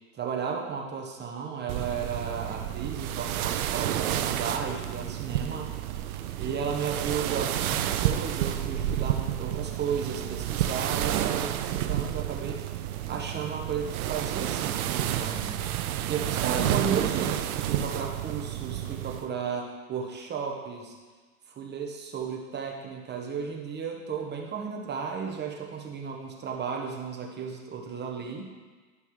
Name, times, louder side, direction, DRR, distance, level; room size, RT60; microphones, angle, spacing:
voice 1, 0.2-5.7 6.1-12.6 13.1-15.6 16.1-20.9 21.6-28.5, right 6 dB, 25° right, 1 dB, 1.0 m, -34 dB
sound 1, 1.7-19.3, right 11 dB, 70° right, 0.6 m, -30 dB
11.0 x 5.6 x 3.1 m, 1.4 s
hypercardioid pair, 100°, 46 cm